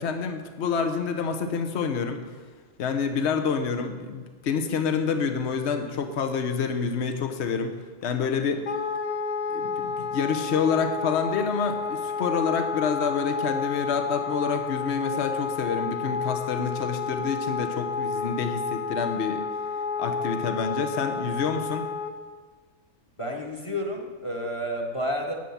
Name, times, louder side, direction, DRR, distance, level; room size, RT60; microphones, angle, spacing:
voice 1, 0.0-2.2 2.8-7.8 8.0-8.6 9.5-19.5 20.0-21.9, left 6 dB, 65° left, 6 dB, 1.2 m, -28 dB
Wind instrument woodwind instrument, 8.6-22.1, left 5 dB, 40° left, 0.8 m, -30 dB
voice 2, 23.2-25.3, equal, 25° left, 1 dB, 1.3 m, -30 dB
9.0 x 7.1 x 8.6 m, 1.4 s
omnidirectional pair, 1.3 m